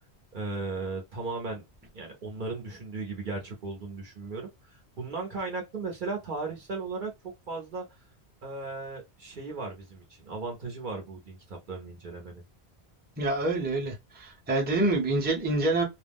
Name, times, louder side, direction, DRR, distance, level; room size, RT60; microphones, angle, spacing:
voice 1, 0.3-1.6 1.9-7.1 7.5-7.8 8.4-12.4, right 3 dB, 55° right, 0.8 m, -36 dB
voice 2, 13.2-15.8, right 2 dB, 10° right, 0.6 m, -26 dB
2.4 x 2.0 x 3.3 m
omnidirectional pair, 1.1 m